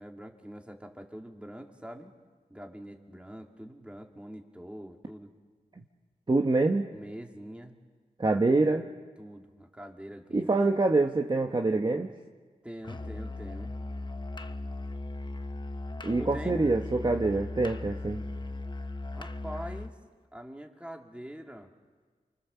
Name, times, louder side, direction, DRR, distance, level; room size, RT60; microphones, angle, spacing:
voice 1, 0.0-2.1 2.5-5.3 6.9-7.8 9.2-10.7 12.6-13.8 16.2-16.6 19.1-20.0 20.3-21.7, equal, 10° right, 2 dB, 2.6 m, -44 dB
voice 2, 6.3-6.9 8.2-8.9 10.3-12.1 16.0-18.2, right 2 dB, 30° right, 2 dB, 1.2 m, -25 dB
Musical instrument, 12.8-20.0, left 2 dB, 30° left, 0.9 m, -38 dB
29.5 x 25.0 x 6.9 m, 1.5 s
wide cardioid pair, 95°, 15 cm